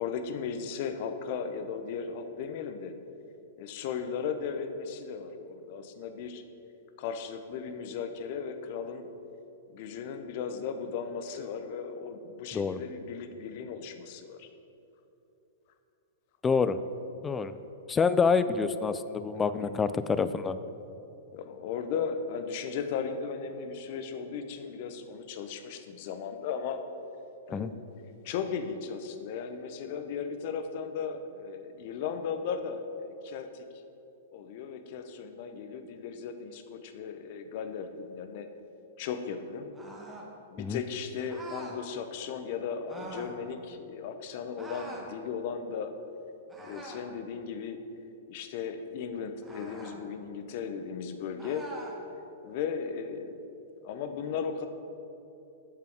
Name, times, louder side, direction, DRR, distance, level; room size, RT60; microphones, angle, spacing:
voice 1, 0.0-2.9 3.6-6.4 7.0-9.1 9.7-14.5 19.3-19.7 21.3-26.8 27.5-27.8 28.2-33.6 34.3-38.5 39.0-39.7 40.5-45.9 46.6-47.8 48.3-51.7 52.4-53.3 53.8-54.7, left 6 dB, 50° left, 8 dB, 0.7 m, -36 dB
voice 2, 16.4-16.8 17.2-17.6 17.9-20.6 27.5-27.7 40.6-40.8, left 5 dB, 15° left, 12 dB, 0.3 m, -27 dB
sound 1, 39.7-40.3 41.3-41.8 42.9-43.4 44.6-45.1 46.5-47.1 49.4-50.0 51.4-52.0, right 2 dB, 10° right, 1.2 m, -44 dB
7.9 x 6.9 x 4.6 m, 2.9 s
hypercardioid pair, 110°, 0 cm